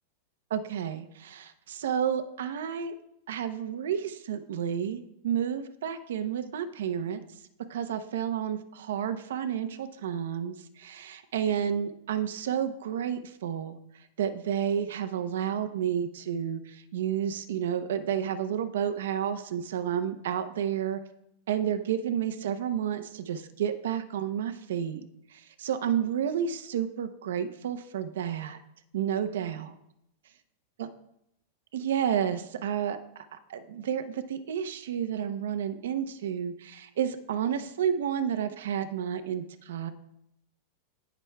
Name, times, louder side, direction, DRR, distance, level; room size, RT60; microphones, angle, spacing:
voice 1, 0.5-2.9 3.3-7.2 7.7-13.8 14.2-21.0 21.5-28.6 28.9-29.7 30.8-30.9 31.7-39.9, right 9 dB, 80° right, 9 dB, 0.6 m, -31 dB
17.5 x 6.0 x 2.2 m, 0.78 s
supercardioid pair, 175°, 0 cm